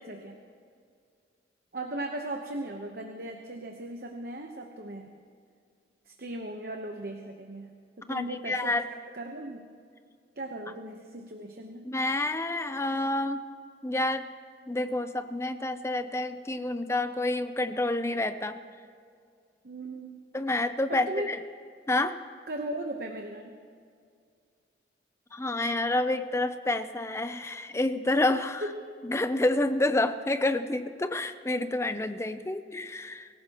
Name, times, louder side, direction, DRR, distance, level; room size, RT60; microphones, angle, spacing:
voice 1, 0.1-0.4 1.7-5.1 6.1-8.8 9.1-9.7 10.4-11.9 19.6-20.2 20.9-21.3 22.5-23.6 28.6-28.8, right 1 dB, 55° right, 3 dB, 1.0 m, -37 dB
voice 2, 8.1-8.8 11.8-13.4 13.8-14.3 14.7-18.6 20.3-21.4 21.9-22.2 25.3-28.6 29.0-33.3, left 2 dB, 15° left, 10 dB, 0.5 m, -28 dB
24.5 x 16.0 x 3.0 m, 2.2 s
head